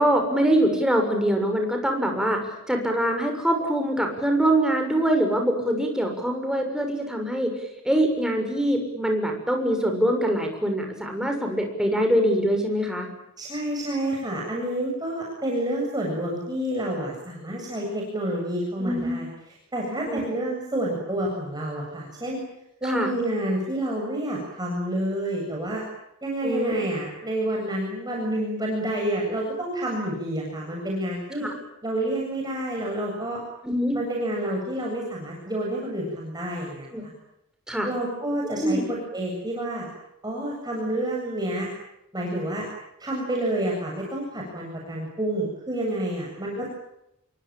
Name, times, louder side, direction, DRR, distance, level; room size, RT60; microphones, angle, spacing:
voice 1, 0.0-7.5 7.8-13.1 18.8-19.2 20.1-20.3 22.8-23.1 26.4-26.7 31.4-31.5 33.6-34.0 36.9-37.0 37.7-37.9 38.5-38.8 46.6-46.7, right 1 dB, 5° right, 3 dB, 6.8 m, -24 dB
voice 2, 13.4-22.4 22.8-25.8 26.2-31.5 31.8-33.4 33.9-37.1 37.8-39.9 40.2-41.7 42.1-42.6 43.0-46.7, right 1 dB, 20° right, -1 dB, 7.5 m, -29 dB
27.5 x 24.0 x 9.0 m, 0.83 s
head